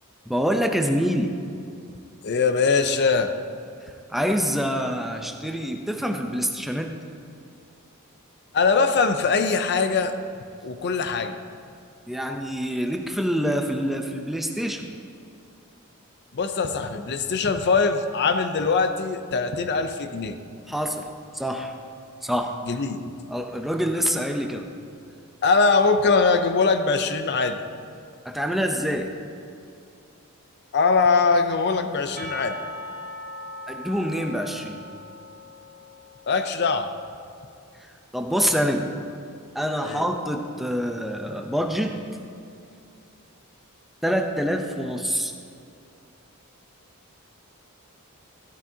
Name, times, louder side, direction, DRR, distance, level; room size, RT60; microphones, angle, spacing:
voice 1, 0.3-1.3 4.1-6.9 12.1-14.9 20.7-21.1 21.3-21.7 22.2-22.6 23.3-24.7 28.3-29.1 33.7-34.8 38.1-38.9 39.5-42.0 44.0-45.3, equal, ahead, 3 dB, 0.6 m, -26 dB
voice 2, 2.2-3.3 8.5-10.1 10.6-11.3 16.3-20.4 22.7-23.0 25.4-27.6 30.7-32.6 36.3-36.9 39.8-40.0, left 4 dB, 50° left, 8 dB, 0.5 m, -22 dB
Percussion, 32.2-37.0, left 1 dB, 40° right, 1.2 m, -40 dB
13.5 x 12.5 x 2.8 m, 2.4 s
head